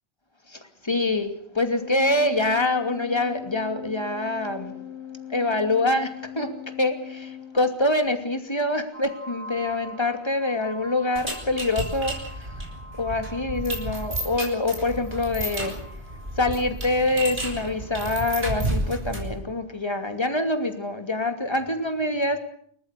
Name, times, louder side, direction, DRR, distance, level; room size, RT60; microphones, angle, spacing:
voice 1, 0.5-4.7 5.3-6.5 6.8-12.7 13.0-15.7 16.3-22.4, left 2 dB, 25° left, 6 dB, 2.7 m, -25 dB
Organ, 1.7-8.2, left 9 dB, 50° left, 1.6 m, -40 dB
sound 1, 8.9-18.4, equal, 75° left, 4.3 m, -46 dB
sound 2, 11.1-19.4, right 1 dB, 50° right, 6.7 m, -32 dB
29.0 x 14.5 x 8.3 m, 0.65 s
omnidirectional pair, 1.1 m